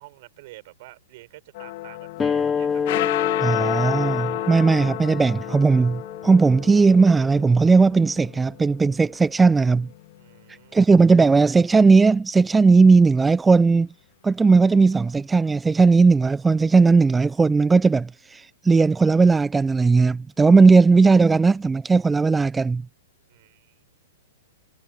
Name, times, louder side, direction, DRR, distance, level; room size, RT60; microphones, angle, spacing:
voice 1, 0.0-2.8 10.2-11.0 23.3-23.8, right 19 dB, 45° right, 7.0 m, -48 dB
sound 1, 1.5-10.1, left 19 dB, 45° left, 1.7 m, -32 dB
sound 2, 2.2-7.3, left 6 dB, 15° left, 2.7 m, -28 dB
voice 2, 3.4-9.9 10.7-13.9 14.2-22.8, right 4 dB, 10° right, 0.7 m, -17 dB
figure-of-eight pair, 105°, 0 cm